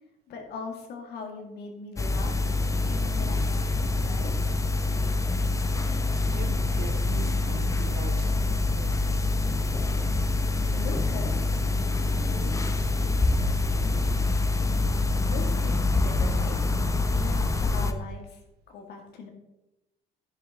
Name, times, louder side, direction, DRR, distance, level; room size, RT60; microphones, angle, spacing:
voice 1, 0.3-2.4 2.9-4.3 10.7-11.5 15.3-16.6 17.1-18.4 18.7-19.3, left 4 dB, 75° left, 2.1 m, -40 dB
sound 1, 2.0-17.9, left 2 dB, 20° left, 0.6 m, -25 dB
voice 2, 6.3-9.3 12.3-12.9, right 11 dB, 75° right, 0.6 m, -43 dB
10.5 x 6.4 x 3.7 m
cardioid pair, 110°, 17 cm